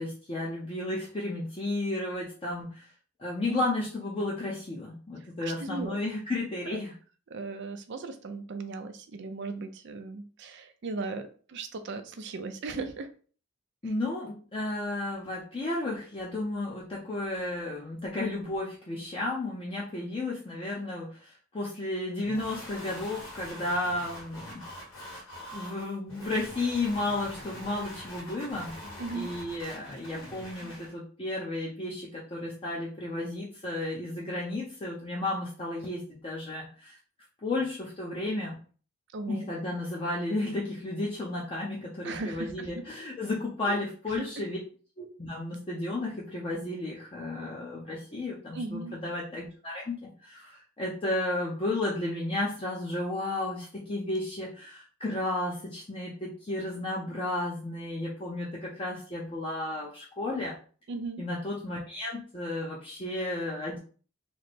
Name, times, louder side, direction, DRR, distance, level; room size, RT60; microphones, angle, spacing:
voice 1, 0.0-2.9 3.2-6.9 13.8-24.6 25.1-25.2 25.5-28.7 29.1-36.9 37.4-38.6 39.3-44.6 45.0-60.6 61.2-63.8, left 2 dB, 25° left, -5 dB, 0.6 m, -33 dB
voice 2, 5.4-6.0 6.7-6.8 7.3-13.1 29.0-29.3 39.1-39.5 42.0-42.8 43.7-43.8 44.2-44.3 48.5-49.0 60.9-61.2, right 3 dB, 60° right, 8 dB, 0.5 m, -37 dB
sound 1, 22.2-30.9, equal, 75° left, 1.5 m, -44 dB
3.1 x 2.0 x 4.1 m, 0.41 s
head